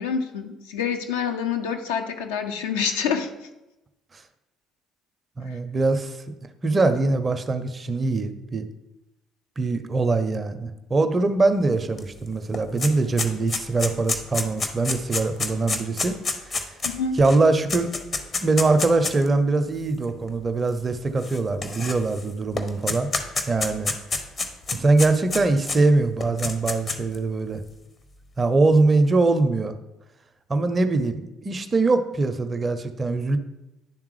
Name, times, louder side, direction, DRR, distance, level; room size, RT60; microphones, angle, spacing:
voice 1, 0.0-3.3 5.4-5.5 16.8-17.2, left 6 dB, 70° left, 5 dB, 0.5 m, -27 dB
voice 2, 5.4-6.2 6.6-8.7 9.6-16.2 17.2-17.9 18.4-23.1 23.5-23.9 24.7-27.6 28.4-29.7 30.5-33.4, right 3 dB, 30° right, 9 dB, 0.5 m, -22 dB
sound 1, 12.0-12.1 12.3-19.3 20.0-20.1 21.2-22.2 22.6-25.8 26.2-27.2, left 3 dB, 35° left, 0.7 m, -28 dB
10.5 x 3.5 x 3.2 m, 0.97 s
figure-of-eight pair, 55°, 0 cm